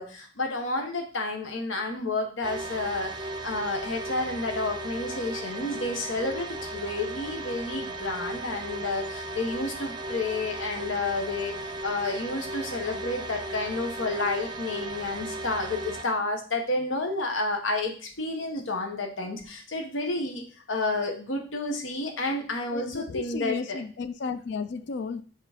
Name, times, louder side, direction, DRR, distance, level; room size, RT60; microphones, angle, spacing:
voice 1, 0.0-23.8, left 2 dB, 85° left, 1.1 m, -30 dB
sound 1, 2.4-16.0, right 2 dB, 25° right, 0.5 m, -36 dB
voice 2, 22.7-25.2, left 4 dB, 60° left, 0.4 m, -33 dB
6.8 x 3.7 x 5.0 m
head